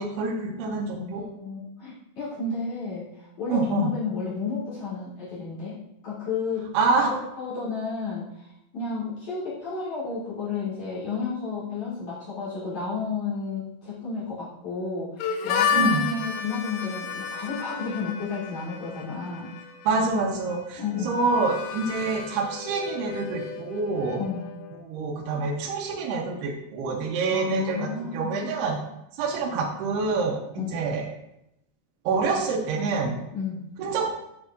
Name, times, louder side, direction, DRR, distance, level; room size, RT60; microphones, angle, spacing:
voice 1, 0.0-1.2 3.5-3.9 6.7-7.1 15.8-16.0 19.9-24.2 24.7-28.8 29.2-31.1 32.1-33.2 33.8-34.1, right 4 dB, 75° right, 0 dB, 2.4 m, -26 dB
voice 2, 1.1-8.4 8.7-19.5 20.8-21.1 24.2-24.5 27.3-28.5 30.6-30.9 33.3-33.6, left 4 dB, 50° left, -10 dB, 2.5 m, -32 dB
Harmonica, 15.2-24.8, left 6 dB, 85° left, 2.6 m, -32 dB
9.5 x 4.8 x 2.6 m, 0.82 s
omnidirectional pair, 5.8 m